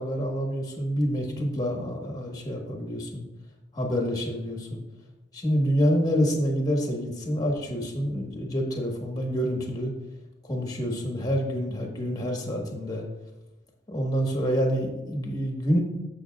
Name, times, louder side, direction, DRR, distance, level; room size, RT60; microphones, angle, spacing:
voice 1, 0.0-3.2 3.7-4.8 5.3-9.9 10.4-13.0 13.9-15.8, equal, 20° left, 1 dB, 1.4 m, -27 dB
14.5 x 5.5 x 2.4 m, 0.99 s
head